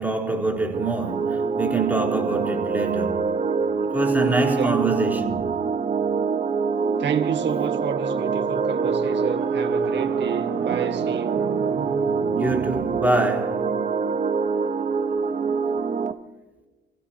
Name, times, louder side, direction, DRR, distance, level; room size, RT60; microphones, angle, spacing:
voice 1, 0.0-3.4 3.9-5.7 12.3-13.8, right 2 dB, 10° right, 4.1 m, -25 dB
sound 1, 0.7-16.1, right 5 dB, 40° right, 1.2 m, -25 dB
sound 2, 6.5-13.0, right 8 dB, 80° right, 1.1 m, -35 dB
voice 2, 7.0-11.4, right 7 dB, 65° right, 1.8 m, -29 dB
30.0 x 16.5 x 2.9 m
cardioid pair, 90°, 20 cm